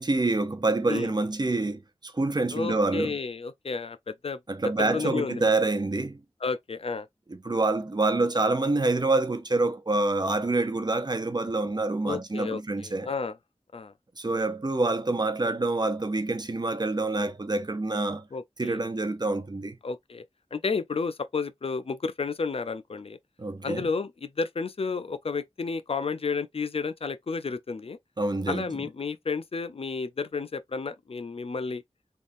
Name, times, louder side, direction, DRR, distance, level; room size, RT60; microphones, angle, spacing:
voice 1, 0.0-3.2 4.5-6.2 7.4-13.1 14.2-18.2 18.6-19.8 23.4-23.9 28.2-28.7, right 2 dB, 40° right, 0.6 m, -26 dB
voice 2, 2.5-5.5 6.4-7.1 12.0-13.4 13.7-13.9 18.3-18.8 19.8-20.3 20.5-23.2 23.6-28.0 28.5-31.8, left 4 dB, 60° left, 0.4 m, -32 dB
3.5 x 2.4 x 2.5 m
wide cardioid pair, 50°, 11 cm